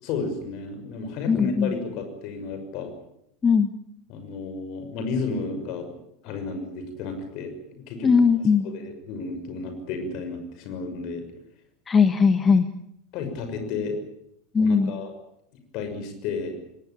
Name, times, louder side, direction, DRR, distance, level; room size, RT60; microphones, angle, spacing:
voice 1, 0.0-2.9 4.1-5.9 6.2-8.1 8.6-11.2 13.1-14.0 14.6-15.1 15.7-16.6, left 4 dB, 45° left, 8 dB, 6.2 m, -32 dB
voice 2, 1.3-1.7 3.4-3.7 8.0-8.6 11.9-12.7 14.5-14.9, left 5 dB, 20° left, 11 dB, 1.3 m, -19 dB
23.0 x 19.0 x 8.8 m, 0.75 s
figure-of-eight pair, 80°, 0 cm